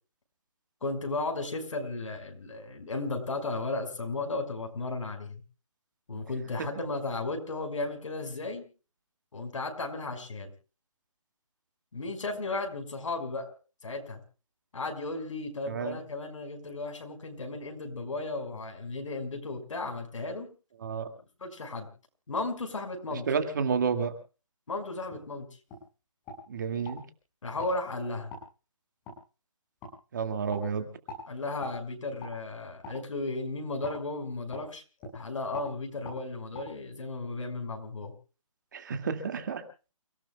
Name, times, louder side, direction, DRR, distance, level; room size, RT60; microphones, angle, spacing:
voice 1, 0.8-5.3 6.1-8.6 9.3-10.5 11.9-13.5 13.8-14.2 14.7-20.5 21.4-21.9 22.3-23.3 24.7-25.5 27.4-28.3 31.3-34.8 35.1-38.1, left 3 dB, 65° left, 5 dB, 5.7 m, -35 dB
voice 2, 15.7-16.0 20.8-21.1 23.1-24.1 26.5-27.0 30.1-30.9 38.7-39.6, right 6 dB, 35° right, 7 dB, 2.3 m, -30 dB
sound 1, 25.1-25.2 25.7-25.8 26.2-27.0 27.5-27.7 28.3-28.4 29.0-29.2 29.8-29.9 30.5-30.6 31.1-31.2 31.6-31.8 32.2-32.3 32.8-33.0 33.8-34.0 34.5-34.7 35.0-35.2 35.5-35.7 36.0-36.2 36.5-36.6, left 2 dB, 10° left, 6.8 m, -42 dB
29.5 x 17.0 x 2.4 m, 0.36 s
hypercardioid pair, 175°, 18 cm